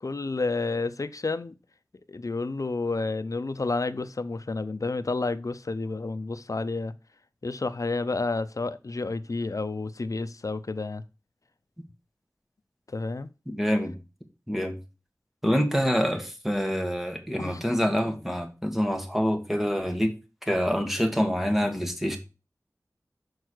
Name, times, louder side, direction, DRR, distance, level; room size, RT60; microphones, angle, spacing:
voice 1, 0.0-1.5 2.1-6.9 7.4-11.0 12.9-13.3 17.4-18.1, left 3 dB, 60° left, 0.6 m, -30 dB
voice 2, 13.5-14.0 14.5-14.8 15.4-20.1 20.5-22.2, equal, 5° right, 1.8 m, -26 dB
6.4 x 4.7 x 6.3 m
wide cardioid pair, 60°, 6 cm